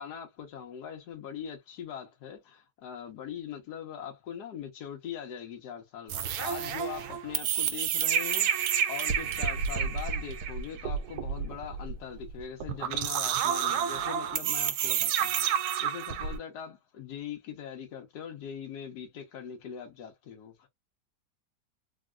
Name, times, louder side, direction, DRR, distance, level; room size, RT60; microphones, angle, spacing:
voice 1, 0.0-15.4 15.8-20.7, left 8 dB, 70° left, 1.5 m, -41 dB
sound 1, 6.1-16.4, right 8 dB, 70° right, 1.0 m, -30 dB
3.5 x 2.2 x 2.3 m
omnidirectional pair, 1.9 m